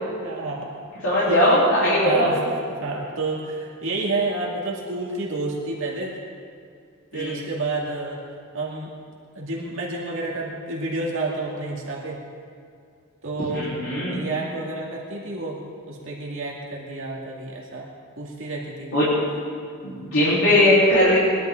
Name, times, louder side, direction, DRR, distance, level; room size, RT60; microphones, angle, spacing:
voice 1, 0.2-0.8 1.2-1.5 1.9-6.2 7.1-8.2 8.5-8.9 9.3-12.2 13.2-13.7 14.1-15.6 15.9-17.9 18.2-18.9, right 2 dB, 65° right, -3 dB, 2.3 m, -29 dB
voice 2, 1.0-2.3 7.1-7.4 13.5-14.2 18.9-19.1 19.8-21.2, left 1 dB, 75° left, -11 dB, 4.0 m, -19 dB
21.0 x 11.5 x 3.9 m, 2.3 s
head